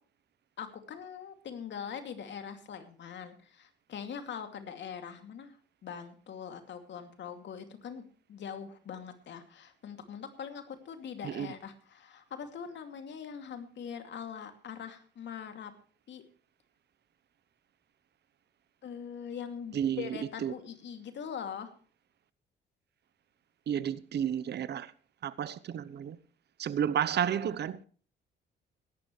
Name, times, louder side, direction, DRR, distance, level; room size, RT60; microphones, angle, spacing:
voice 1, 0.6-5.5 5.8-8.0 8.3-15.7 16.1-16.2 18.8-21.7, left 7 dB, 65° left, 2.6 m, -42 dB
voice 2, 19.7-20.5 23.7-24.9 25.2-26.2 26.6-27.8, right 9 dB, 60° right, 0.9 m, -32 dB
17.0 x 12.5 x 3.2 m
cardioid pair, 90°, 20 cm